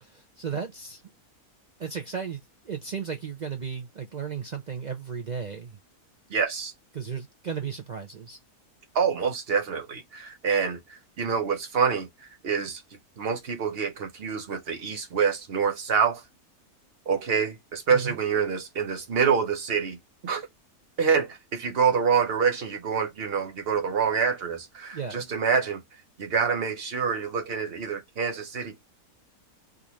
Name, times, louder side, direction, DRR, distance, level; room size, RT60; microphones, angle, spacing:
voice 1, 0.0-1.0 1.8-5.8 6.9-8.4 17.9-18.2 24.9-25.2, right 6 dB, 65° right, 0.4 m, -35 dB
voice 2, 6.3-6.7 8.9-12.8 13.2-16.2 17.1-20.0 20.2-20.5 21.0-25.8 26.2-28.8, right 6 dB, 50° right, 1.0 m, -26 dB
3.7 x 2.5 x 2.9 m
omnidirectional pair, 1.6 m